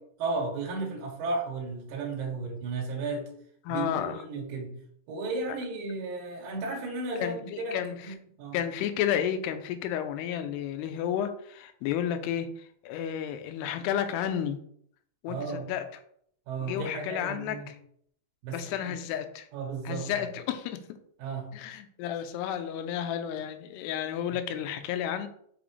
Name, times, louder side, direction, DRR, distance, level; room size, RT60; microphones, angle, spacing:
voice 1, 0.2-3.3 3.7-4.7 5.1-7.8 8.0-8.6 15.3-15.7 16.5-17.7 18.4-18.9 19.5-20.1 21.2-21.5, right 3 dB, 65° right, -2 dB, 3.0 m, -34 dB
voice 2, 3.7-4.2 7.2-8.2 8.5-14.6 15.2-16.0 16.6-17.8 18.5-19.5 19.9-20.8 21.5-25.3, left 9 dB, 85° left, 9 dB, 2.7 m, -32 dB
6.1 x 5.8 x 3.2 m, 0.65 s
omnidirectional pair, 4.6 m